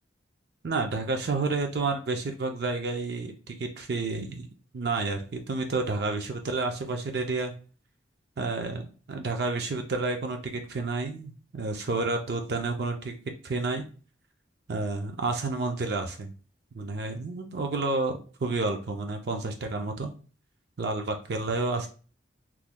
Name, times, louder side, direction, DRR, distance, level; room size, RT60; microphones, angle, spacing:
voice 1, 0.6-4.5 4.7-7.5 8.4-8.8 9.1-13.1 13.4-13.9 14.7-16.3 16.7-20.1 20.8-21.9, right 3 dB, 55° right, 4 dB, 0.4 m, -30 dB
3.5 x 3.0 x 2.2 m, 0.38 s
head